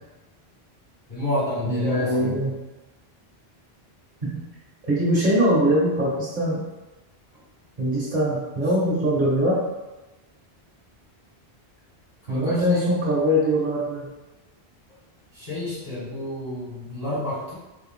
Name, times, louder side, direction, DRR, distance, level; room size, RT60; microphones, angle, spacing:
voice 1, 1.1-2.4 12.3-12.9 15.3-17.5, left 1 dB, 35° left, -8 dB, 1.0 m, -30 dB
voice 2, 1.6-2.5 4.2-4.4 4.9-6.6 7.8-9.6 12.3-14.1, equal, 50° right, -6 dB, 0.9 m, -22 dB
3.2 x 2.2 x 3.6 m, 1.1 s
omnidirectional pair, 1.1 m